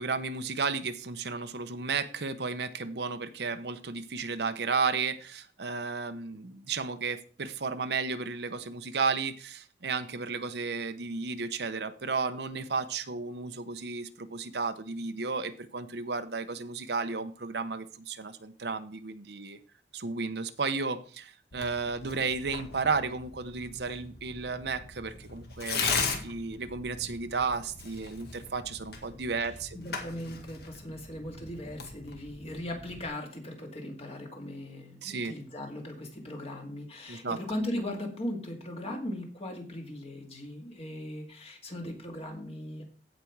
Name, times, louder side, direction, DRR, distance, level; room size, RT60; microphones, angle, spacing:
voice 1, 0.0-19.6 19.9-29.8 35.0-35.3 37.1-37.4, right 4 dB, 65° right, 10 dB, 0.8 m, -33 dB
Tearing, 21.5-33.1, left 5 dB, 60° left, 1.9 m, -38 dB
voice 2, 25.9-26.2 29.7-42.8, left 1 dB, 35° left, 2 dB, 2.2 m, -38 dB
15.5 x 5.3 x 4.7 m, 0.42 s
head